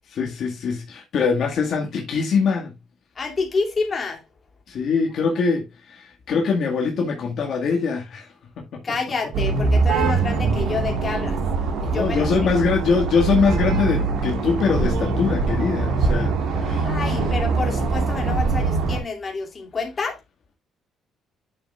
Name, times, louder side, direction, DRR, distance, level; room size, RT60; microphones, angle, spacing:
voice 1, 0.1-2.7 4.7-8.8 10.0-10.1 11.0-11.2 11.9-17.3, left 5 dB, 55° left, 1.8 m, -23 dB
voice 2, 3.2-4.2 8.8-11.4 11.8-12.3 16.8-20.2, left 4 dB, 30° left, 2.7 m, -28 dB
sound 1, 9.3-19.0, right 3 dB, 80° right, 2.8 m, -23 dB
9.6 x 6.8 x 2.4 m
cardioid pair, 120°, 0 cm